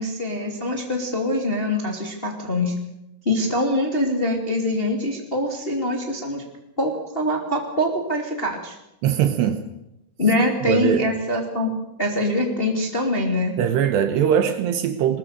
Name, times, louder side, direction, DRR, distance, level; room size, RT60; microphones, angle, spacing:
voice 1, 0.0-2.7 3.2-6.4 6.8-8.8 10.2-11.7 12.0-13.5, left 1 dB, 15° left, 2 dB, 2.1 m, -24 dB
voice 2, 9.0-9.7 10.7-11.0 13.6-15.2, right 9 dB, 75° right, 9 dB, 3.0 m, -21 dB
21.5 x 21.0 x 6.7 m, 0.87 s
omnidirectional pair, 5.5 m